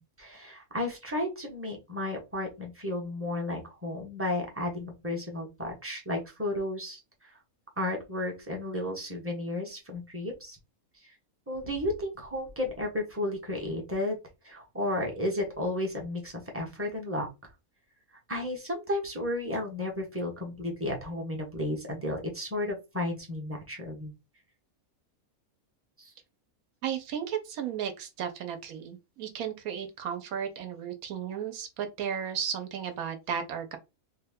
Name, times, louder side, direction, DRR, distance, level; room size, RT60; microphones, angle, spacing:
voice 1, 0.0-7.0 7.8-10.6 11.5-14.2 14.4-17.3 18.3-24.1 26.0-26.1, left 1 dB, 10° right, 0.7 m, -33 dB
voice 2, 26.8-33.8, right 8 dB, 80° right, 1.1 m, -34 dB
3.2 x 2.2 x 3.5 m
omnidirectional pair, 1.5 m